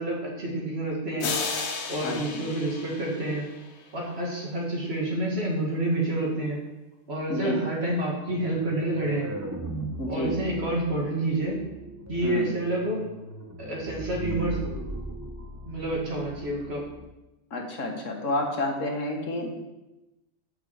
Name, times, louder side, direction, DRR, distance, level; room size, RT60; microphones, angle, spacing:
voice 1, 0.0-1.3 1.9-3.5 3.9-6.6 7.1-9.3 10.1-11.6 12.1-13.0 13.6-14.6 15.7-16.8, right 1 dB, 55° right, -2 dB, 2.2 m, -28 dB
sound 1, 1.2-3.9, left 4 dB, 65° left, 1.1 m, -33 dB
voice 2, 2.0-2.4 7.3-7.6 10.0-10.4 12.2-12.5 17.5-19.5, left 1 dB, 90° left, 2 dB, 1.7 m, -30 dB
sound 2, 8.3-17.0, right 1 dB, 15° right, 0.7 m, -38 dB
6.3 x 5.6 x 6.8 m, 1.0 s
omnidirectional pair, 1.3 m